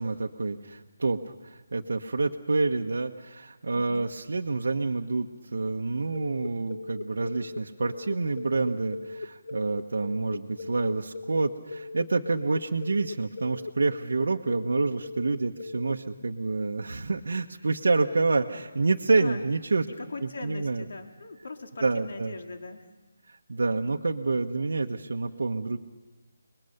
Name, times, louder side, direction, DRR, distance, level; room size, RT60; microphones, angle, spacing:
voice 1, 0.0-19.8 20.2-20.8 21.8-22.3 23.3-25.8, right 3 dB, 60° right, 3 dB, 1.1 m, -28 dB
voice 2, 3.7-4.1 19.1-19.4 19.9-22.9, left 3 dB, 45° left, 4 dB, 2.4 m, -41 dB
sound 1, 6.1-15.9, left 3 dB, 30° left, 0.9 m, -38 dB
29.5 x 21.0 x 6.7 m, 1.2 s
hypercardioid pair, 180°, 0 cm